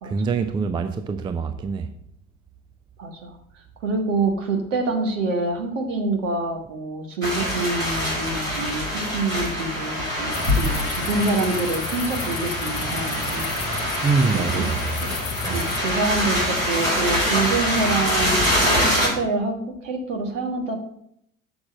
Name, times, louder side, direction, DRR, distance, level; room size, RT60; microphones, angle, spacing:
voice 1, 0.0-1.9 14.0-15.0 15.4-15.6, right 4 dB, 10° right, 0.4 m, -24 dB
voice 2, 3.0-13.5 14.3-14.7 15.0-15.1 15.5-20.8, right 3 dB, 70° right, 1.5 m, -26 dB
sound 1, 7.2-19.1, equal, 85° right, 3.5 m, -24 dB
sound 2, 10.3-15.8, left 5 dB, 55° left, 1.2 m, -33 dB
7.1 x 6.1 x 6.4 m
figure-of-eight pair, 65°, 39 cm